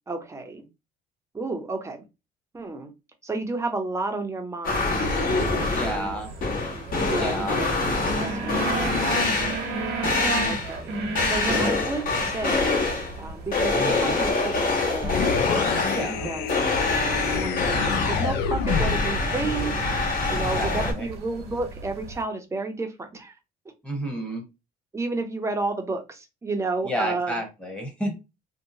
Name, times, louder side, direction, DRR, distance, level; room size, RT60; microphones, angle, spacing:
voice 1, 0.1-0.7 1.3-2.1 2.5-2.9 3.2-6.2 6.7-9.4 10.4-15.8 16.0-23.4 24.9-27.4, right 3 dB, 15° right, 5 dB, 0.6 m, -32 dB
sound 1, 4.6-6.1 6.4-9.8 10.0-10.8 11.1-13.2 13.5-16.2 16.5-20.9, left 3 dB, 55° left, 1.3 m, -25 dB
sound 2, 5.1-22.2, right 3 dB, 75° right, 0.9 m, -35 dB
voice 2, 5.7-6.3 7.2-7.6 13.7-14.2 15.9-16.3 20.4-21.1 23.8-24.5 26.8-28.2, equal, 5° left, 2 dB, 1.1 m, -31 dB
sound 3, 15.0-19.2, left 7 dB, 80° left, 0.4 m, -28 dB
2.8 x 2.2 x 2.7 m, 0.25 s
cardioid pair, 110°, 17 cm